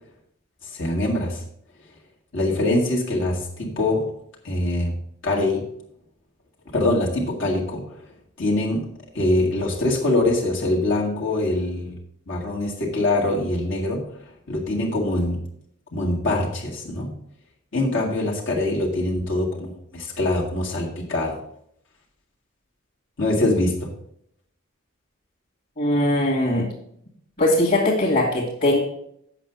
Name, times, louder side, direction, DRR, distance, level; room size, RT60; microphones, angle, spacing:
voice 1, 0.6-1.4 2.3-4.1 4.4-5.0 5.2-5.7 6.7-8.0 8.4-8.9 9.1-12.0 12.3-14.0 14.5-15.4 15.9-17.1 17.7-21.4 23.2-23.9, left 2 dB, 65° left, -3 dB, 2.0 m, -23 dB
voice 2, 25.8-26.7 27.4-28.8, left 1 dB, 45° left, -5 dB, 2.2 m, -20 dB
8.1 x 5.9 x 6.8 m, 0.71 s
head